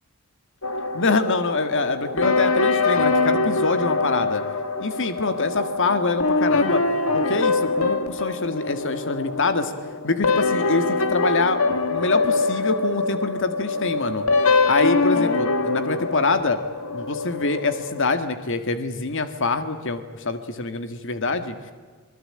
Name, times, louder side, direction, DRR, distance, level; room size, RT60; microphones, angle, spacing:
sound 1, 0.6-18.0, left 3 dB, 75° left, 2.1 m, -24 dB
voice 1, 0.9-4.4 4.8-6.8 7.1-9.7 10.0-14.2 14.7-16.6 16.9-21.6, left 3 dB, 60° left, 10 dB, 1.8 m, -25 dB
26.5 x 21.0 x 8.8 m, 1.5 s
head